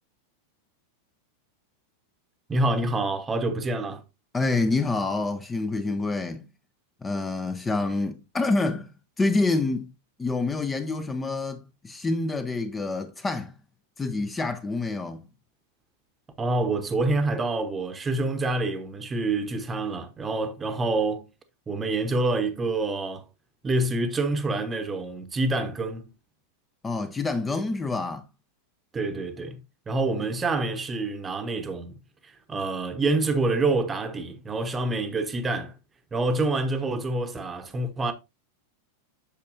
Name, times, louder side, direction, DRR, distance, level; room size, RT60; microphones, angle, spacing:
voice 1, 2.5-4.0 16.4-21.3 21.7-23.3 23.6-26.1 28.9-32.0 32.2-35.8 36.1-38.1, right 2 dB, 15° right, 0.9 m, -27 dB
voice 2, 4.3-6.5 7.0-8.9 9.2-9.9 10.2-13.5 14.0-15.3 26.8-28.2, left 3 dB, 15° left, 0.6 m, -27 dB
8.2 x 6.4 x 2.6 m
figure-of-eight pair, 90°, 0 cm